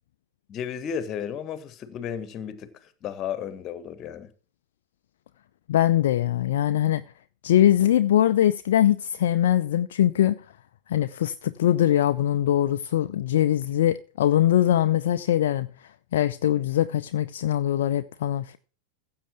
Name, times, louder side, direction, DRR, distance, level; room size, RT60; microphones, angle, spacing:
voice 1, 0.5-4.3, left 8 dB, 30° left, 1.6 m, -34 dB
voice 2, 5.7-7.0 7.4-10.4 10.9-15.7 16.1-18.6, left 11 dB, 60° left, 0.5 m, -22 dB
15.5 x 7.8 x 4.4 m
figure-of-eight pair, 90°, 0 cm